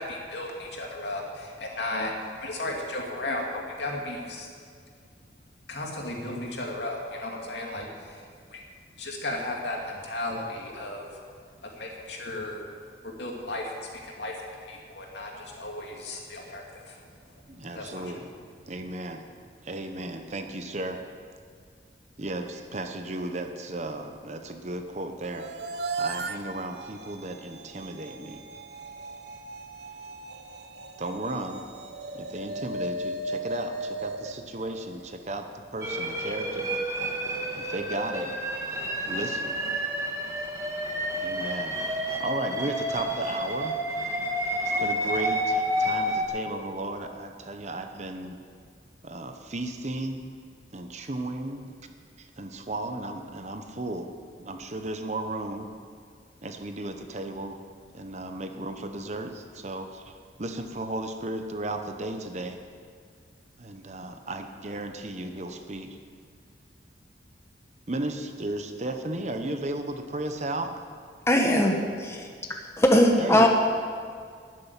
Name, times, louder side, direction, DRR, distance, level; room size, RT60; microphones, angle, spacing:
voice 1, 0.0-4.5 5.7-8.6 9.0-11.2 11.6-12.6 13.0-17.0 17.5-18.1, left 1 dB, 75° left, 0 dB, 2.5 m, -35 dB
voice 2, 17.5-18.3 18.7-19.2 19.6-21.0 22.2-28.4 29.9-30.1 31.0-31.6 32.1-36.7 37.6-38.3 38.7-39.6 41.2-41.8 42.2-43.8 44.8-48.4 49.0-50.2 50.7-51.7 52.2-54.1 54.4-55.7 56.4-57.6 57.9-62.6 63.6-66.0 67.9-70.7 73.2-73.5, right 2 dB, 40° right, 6 dB, 1.0 m, -35 dB
sound 1, 25.2-35.4, right 2 dB, 65° right, 0.8 m, -37 dB
sound 2, 35.8-46.2, equal, 15° right, 1.6 m, -30 dB
voice 3, 71.3-72.3 72.8-73.5, left 1 dB, 15° left, 2 dB, 1.1 m, -20 dB
13.0 x 7.7 x 9.8 m, 2.1 s
head